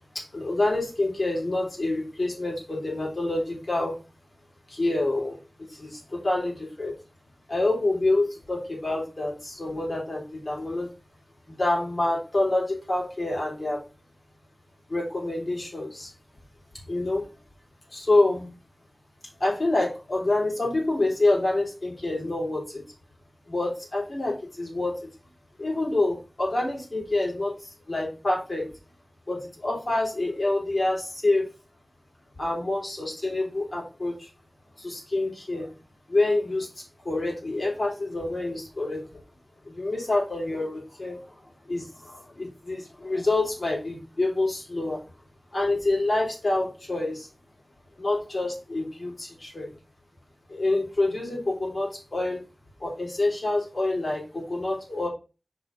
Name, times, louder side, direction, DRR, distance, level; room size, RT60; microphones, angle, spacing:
voice 1, 0.1-3.9 4.7-5.4 5.7-6.9 7.5-10.9 11.5-13.8 14.9-16.1 16.9-17.2 17.9-18.5 19.4-22.8 23.5-25.1 25.6-28.7 29.3-31.5 32.4-34.3 34.8-35.7 36.1-39.0 39.6-41.2 41.7-45.0 45.5-47.3 48.0-49.7 50.5-52.4 52.8-55.1, left 2 dB, 65° left, -3 dB, 3.4 m, -27 dB
5.1 x 4.2 x 5.1 m, 0.33 s
wide cardioid pair, 55°, 0 cm